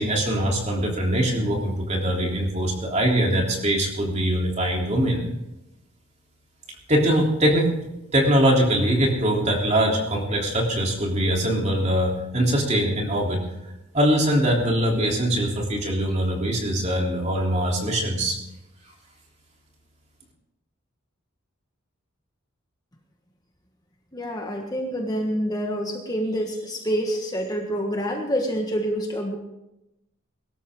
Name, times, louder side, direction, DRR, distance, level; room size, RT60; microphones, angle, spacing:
voice 1, 0.0-5.2 6.9-7.7 8.1-13.4 13.9-18.4, right 1 dB, 30° right, 0 dB, 3.3 m, -22 dB
voice 2, 24.1-29.4, equal, 20° left, 1 dB, 1.4 m, -27 dB
22.0 x 13.0 x 3.7 m, 0.91 s
head